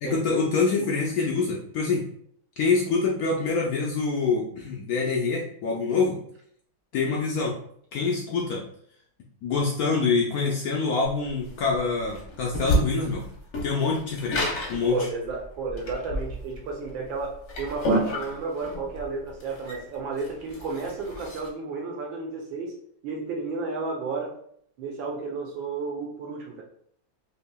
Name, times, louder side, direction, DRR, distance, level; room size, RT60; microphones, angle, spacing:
voice 1, 0.0-2.1 2.6-6.2 6.9-7.6 7.9-8.6 9.4-13.2 13.6-15.0, left 4 dB, 85° left, -2 dB, 0.8 m, -25 dB
sound 1, 11.1-21.5, equal, 55° left, 0.8 m, -30 dB
voice 2, 14.9-22.7 23.0-24.4 24.8-26.6, right 4 dB, 75° right, 0 dB, 1.3 m, -32 dB
4.6 x 2.8 x 2.2 m, 0.65 s
omnidirectional pair, 2.2 m